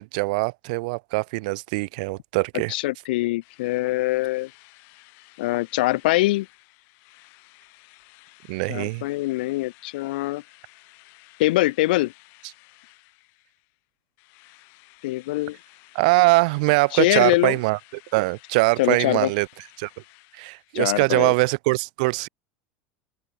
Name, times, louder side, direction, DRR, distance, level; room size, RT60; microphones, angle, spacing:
voice 1, 0.0-2.7 8.5-9.0 15.9-17.8 18.1-19.5 19.8-19.9 20.3-22.3, right 26 dB, 60° right, 0.4 m, -22 dB
voice 2, 2.7-4.5 5.4-6.5 8.7-10.4 11.4-12.1 15.0-15.6 16.9-17.6 18.8-19.3 20.7-21.3, left 19 dB, 80° left, 0.7 m, -23 dB
Drill, 3.4-13.8 14.2-21.1, left 28 dB, 45° left, 6.7 m, -54 dB
open air
supercardioid pair, 175°, 5 cm